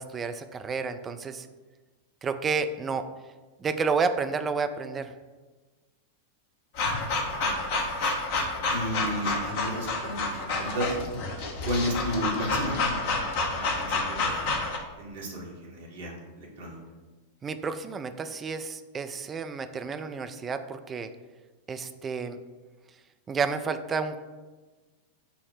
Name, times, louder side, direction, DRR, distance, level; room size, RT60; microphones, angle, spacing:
voice 1, 0.0-1.5 2.2-3.1 3.6-5.1 17.4-21.1 21.7-22.4 23.3-24.2, right 5 dB, 20° right, 10 dB, 0.3 m, -30 dB
sound 1, 6.7-14.8, left 3 dB, 50° left, 0.7 m, -29 dB
voice 2, 7.2-7.6 8.7-11.0 11.6-13.2 13.5-14.6 15.0-16.8, equal, 60° right, -2 dB, 1.2 m, -33 dB
5.6 x 2.0 x 4.7 m, 1.3 s
figure-of-eight pair, 90°, 0 cm